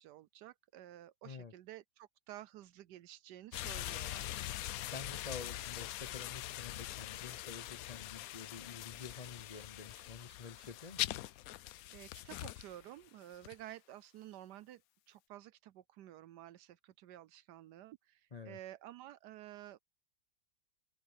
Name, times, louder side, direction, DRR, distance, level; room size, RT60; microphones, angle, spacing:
voice 1, 0.0-4.3 11.9-14.8 15.1-19.8, right 13 dB, 75° right, 1.1 m, -52 dB
sound 1, 3.5-12.9 13.4-13.5, left 14 dB, 80° left, 0.8 m, -43 dB
voice 2, 4.9-11.0 18.3-18.6, left 5 dB, 50° left, 0.4 m, -49 dB
omnidirectional pair, 2.0 m